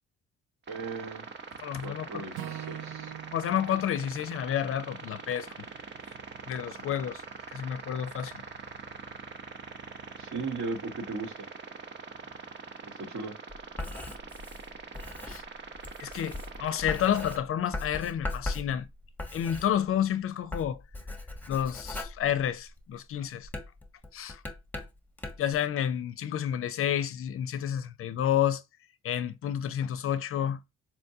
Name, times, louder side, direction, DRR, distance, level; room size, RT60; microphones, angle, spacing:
sound 1, 0.7-17.4, right 5 dB, 35° right, 0.7 m, -43 dB
voice 1, 0.7-1.2 1.8-3.1 10.2-11.4 12.8-13.4, right 4 dB, 65° right, 1.3 m, -37 dB
voice 2, 1.6-2.2 3.3-5.5 6.5-7.2 7.5-8.4 15.3-15.4 16.0-18.9 19.3-20.8 21.5-23.5 24.1-24.4 25.4-28.6 29.0-30.7, left 10 dB, 45° left, 0.4 m, -30 dB
Acoustic guitar / Strum, 2.3-6.6, right 11 dB, 90° right, 0.6 m, -45 dB
Writing, 13.5-20.1 20.4-22.9 23.4-25.6, left 2 dB, 5° left, 0.8 m, -39 dB
4.3 x 2.2 x 2.7 m
cardioid pair, 90°, 30 cm